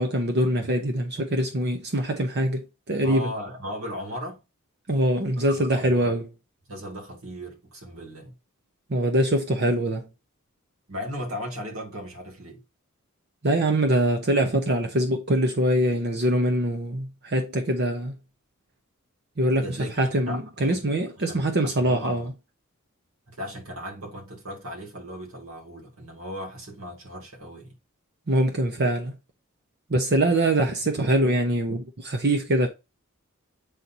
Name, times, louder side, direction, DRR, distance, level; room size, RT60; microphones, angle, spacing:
voice 1, 0.0-3.3 4.9-6.2 8.9-10.1 13.4-18.1 19.4-22.3 28.3-29.2 29.9-32.7, right 1 dB, 50° right, 0.9 m, -23 dB
voice 2, 3.0-4.4 5.5-6.1 6.7-8.3 10.9-12.6 19.6-20.8 21.2-22.3 23.3-27.7, equal, 85° right, 2.6 m, -37 dB
8.2 x 4.0 x 2.8 m
head